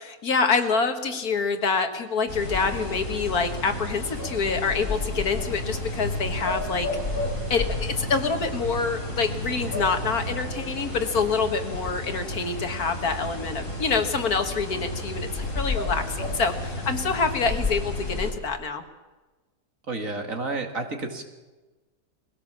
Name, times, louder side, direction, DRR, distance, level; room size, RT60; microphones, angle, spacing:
voice 1, 0.0-6.9 7.5-18.8, left 4 dB, 65° left, 7 dB, 2.0 m, -26 dB
sound 1, 2.3-18.3, left 2 dB, 35° left, 4.8 m, -31 dB
voice 2, 19.9-21.2, right 3 dB, 55° right, 4 dB, 2.5 m, -30 dB
21.5 x 17.0 x 7.4 m, 1.2 s
omnidirectional pair, 1.7 m